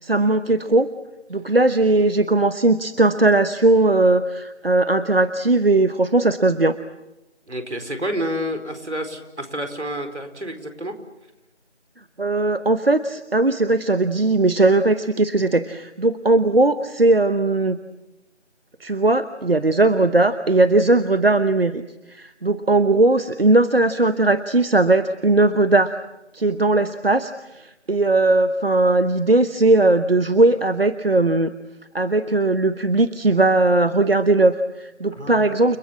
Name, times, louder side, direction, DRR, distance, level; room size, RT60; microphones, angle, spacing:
voice 1, 0.0-0.9 1.3-6.8 12.2-17.8 18.8-21.8 22.1-25.9 26.3-31.5 31.9-35.8, right 2 dB, 55° right, 12 dB, 1.0 m, -18 dB
voice 2, 7.5-10.9 35.2-35.6, equal, 80° right, 7 dB, 4.7 m, -29 dB
30.0 x 20.0 x 8.6 m, 0.97 s
figure-of-eight pair, 175°, 34 cm